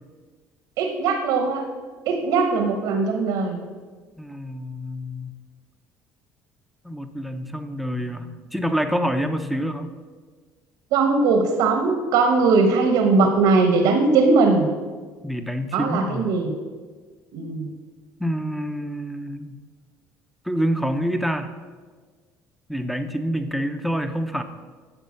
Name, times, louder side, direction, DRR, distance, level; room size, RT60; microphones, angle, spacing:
voice 1, 0.8-1.7 2.1-3.6 10.9-14.7 15.7-16.5 17.3-17.7, right 4 dB, 85° right, 5 dB, 1.1 m, -20 dB
voice 2, 4.2-5.3 6.8-9.9 15.2-16.3 18.2-19.6 20.5-21.5 22.7-24.4, equal, ahead, 8 dB, 0.7 m, -27 dB
9.9 x 6.6 x 6.4 m, 1.5 s
cardioid pair, 130°, 6 cm